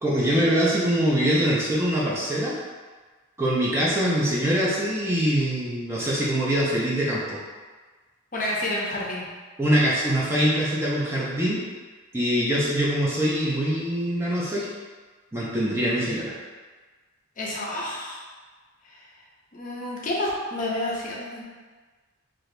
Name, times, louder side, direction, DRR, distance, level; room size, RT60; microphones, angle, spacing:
voice 1, 0.0-2.6 3.4-7.4 9.6-11.6 12.1-14.7 15.3-16.3, equal, 10° right, -7 dB, 0.4 m, -23 dB
voice 2, 8.3-9.2 17.4-18.2 18.8-19.0 19.5-21.4, left 1 dB, 40° left, -4 dB, 0.5 m, -29 dB
2.8 x 2.5 x 3.1 m, 1.4 s
head